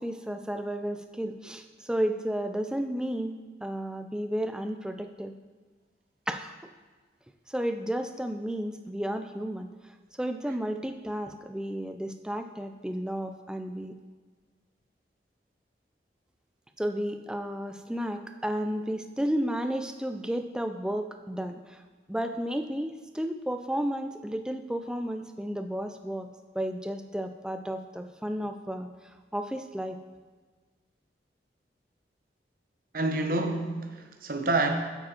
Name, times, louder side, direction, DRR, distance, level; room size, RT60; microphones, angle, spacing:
voice 1, 0.0-5.3 6.3-6.5 7.5-9.7 10.2-13.9 16.8-21.8 22.1-26.3 26.5-28.9 29.3-30.0, equal, 5° right, 7 dB, 0.3 m, -32 dB
voice 2, 32.9-34.7, right 2 dB, 50° right, 4 dB, 0.8 m, -28 dB
8.7 x 5.0 x 4.3 m, 1.4 s
head